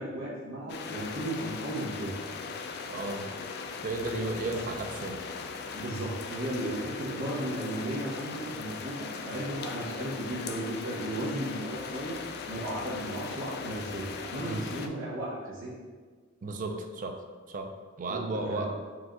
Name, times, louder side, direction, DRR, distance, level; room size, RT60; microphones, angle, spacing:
voice 1, 0.0-2.1 4.4-4.5 5.7-12.1 12.5-15.7 18.1-18.6, right 1 dB, 85° right, -8 dB, 0.9 m, -35 dB
sound 1, 0.7-14.9, left 5 dB, 55° left, 0.3 m, -39 dB
voice 2, 2.9-3.3 3.8-5.2 14.4-14.6 16.4-17.2 17.5-17.7 18.0-18.8, right 2 dB, 40° right, 4 dB, 0.4 m, -34 dB
4.7 x 2.4 x 3.8 m, 1.5 s
head